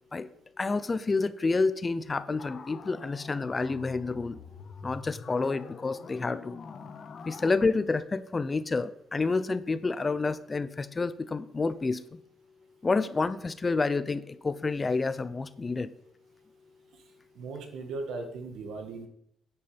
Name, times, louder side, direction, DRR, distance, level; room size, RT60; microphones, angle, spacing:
voice 1, 0.6-4.4 4.8-6.6 7.2-12.2 12.8-15.9, left 3 dB, 30° left, 14 dB, 0.8 m, -29 dB
sound 1, 2.4-7.5, left 5 dB, 50° left, 1.4 m, -45 dB
voice 2, 17.3-19.1, right 3 dB, 80° right, 5 dB, 2.1 m, -37 dB
9.6 x 9.4 x 5.3 m, 0.72 s
cardioid pair, 90°, 0 cm